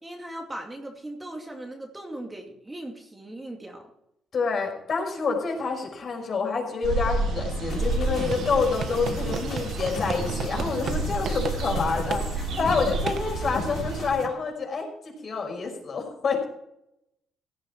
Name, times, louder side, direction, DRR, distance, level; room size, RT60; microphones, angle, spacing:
voice 1, 0.0-3.9 12.3-12.9, right 1 dB, 15° right, 1 dB, 2.4 m, -39 dB
voice 2, 4.3-16.4, left 4 dB, 50° left, 1 dB, 5.5 m, -28 dB
sound 1, 6.8-14.1, right 3 dB, 85° right, 3.4 m, -30 dB
sound 2, 7.7-14.3, left 4 dB, 70° left, 2.7 m, -37 dB
sound 3, 8.1-11.0 11.2-11.6 12.1-12.2 13.1-13.2, right 6 dB, 60° right, 1.2 m, -34 dB
16.0 x 9.5 x 4.7 m, 0.81 s
cardioid pair, 90°, 0 cm